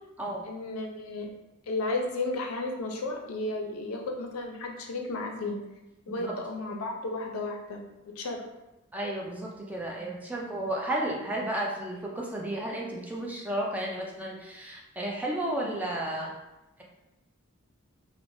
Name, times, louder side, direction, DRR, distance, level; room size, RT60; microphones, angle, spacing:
voice 1, 0.4-1.3 1.7-5.5 6.1-7.8 8.2-8.4, left 2 dB, 85° left, 2 dB, 0.4 m, -33 dB
voice 2, 8.9-16.3, right 1 dB, 10° right, -2 dB, 0.3 m, -33 dB
3.1 x 2.0 x 2.5 m, 0.99 s
head